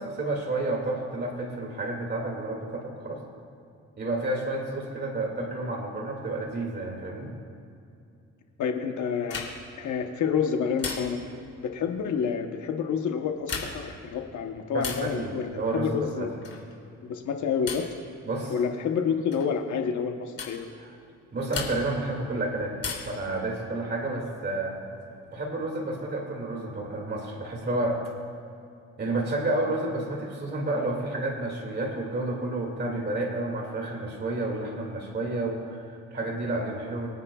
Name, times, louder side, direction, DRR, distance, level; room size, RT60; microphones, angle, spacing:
voice 1, 0.0-3.2 4.0-7.3 14.7-16.3 18.2-18.5 21.3-22.7 23.1-24.8 25.3-28.0 29.0-37.1, right 2 dB, 35° right, -1 dB, 2.4 m, -30 dB
voice 2, 8.6-9.5 9.8-11.2 11.6-16.3 17.0-17.8 18.5-20.7 24.1-24.2, left 6 dB, 70° left, 4 dB, 1.1 m, -29 dB
sound 1, 9.2-9.8 10.8-11.4 13.3-14.0 14.8-15.2 16.4-16.8 17.7-18.0 19.3-19.5 20.4-20.6 21.5-22.1 22.8-23.3 24.7-25.4, left 5 dB, 50° left, 3.0 m, -36 dB
24.5 x 9.6 x 2.4 m, 2.6 s
cardioid pair, 90°, 30 cm